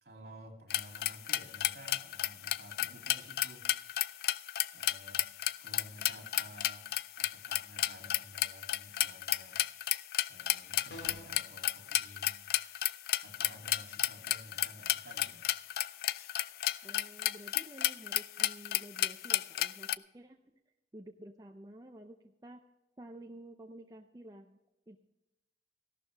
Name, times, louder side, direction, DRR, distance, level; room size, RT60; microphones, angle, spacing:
voice 1, 0.0-3.7 4.7-5.2 5.6-6.9 7.2-9.6 10.3-12.4 13.2-15.5, equal, 65° right, 2 dB, 2.8 m, -53 dB
sound 1, 0.7-20.0, left 14 dB, 55° left, 0.3 m, -32 dB
sound 2, 10.9-11.4, equal, 70° left, 2.1 m, -47 dB
voice 2, 16.8-20.4 20.9-22.6 23.0-24.6 24.9-25.0, right 1 dB, 20° right, 4 dB, 0.5 m, -51 dB
15.5 x 12.0 x 3.4 m, 0.96 s
head